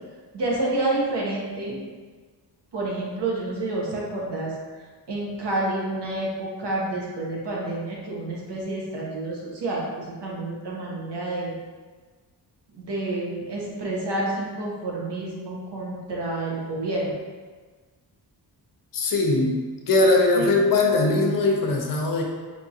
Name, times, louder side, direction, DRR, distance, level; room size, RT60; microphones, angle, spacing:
voice 1, 0.3-1.8 2.7-4.5 5.1-11.5 12.7-17.1 20.3-20.5, right 2 dB, 80° right, -4 dB, 1.0 m, -29 dB
voice 2, 18.9-22.2, left 2 dB, 55° left, 0 dB, 0.6 m, -21 dB
4.6 x 2.4 x 2.7 m, 1.4 s
wide cardioid pair, 170°, 41 cm